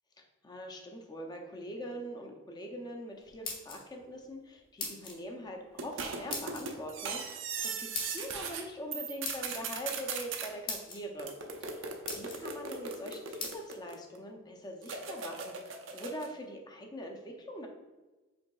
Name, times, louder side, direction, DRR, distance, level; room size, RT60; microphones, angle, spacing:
voice 1, 0.4-11.3 11.6-11.8 12.1-17.7, equal, 20° left, 2 dB, 0.5 m, -43 dB
sound 1, 3.2-4.1 4.8-5.2 6.3-6.6 7.9-8.3 9.2-9.6 10.3-10.4 10.7-11.0 11.6-11.7 12.1-12.4 13.4-13.5, left 4 dB, 45° left, 0.9 m, -38 dB
sound 2, 5.8-8.6 8.9-10.5 11.2-14.2 14.8-16.3, right 5 dB, 70° right, 0.5 m, -39 dB
5.1 x 3.8 x 2.3 m, 1.2 s
head